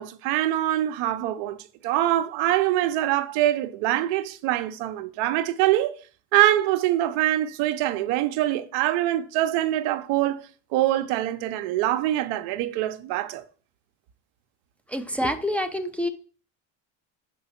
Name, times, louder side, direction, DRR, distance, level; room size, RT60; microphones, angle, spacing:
voice 1, 0.0-1.6 1.8-5.9 6.3-10.5 10.7-13.4, right 13 dB, 75° right, 0.7 m, -24 dB
voice 2, 14.9-16.1, equal, 5° left, 0.6 m, -27 dB
5.5 x 4.5 x 5.7 m
supercardioid pair, 90°, 40 cm